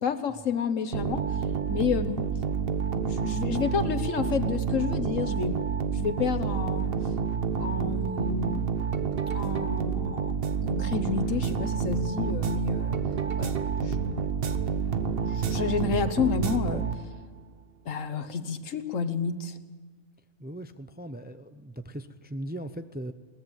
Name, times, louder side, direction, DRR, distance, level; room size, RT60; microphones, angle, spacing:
voice 1, 0.0-1.2 1.7-2.2 3.0-5.6 5.9-6.9 7.6-8.8 9.3-10.4 10.6-12.9 13.4-14.3 15.1-16.9 17.8-19.6, left 6 dB, 80° left, 11 dB, 1.5 m, -30 dB
sound 1, 0.9-17.4, right 6 dB, 50° right, 1.1 m, -29 dB
voice 2, 20.4-23.1, right 1 dB, 10° right, 9 dB, 0.5 m, -38 dB
22.0 x 17.5 x 7.4 m, 1.3 s
omnidirectional pair, 1.3 m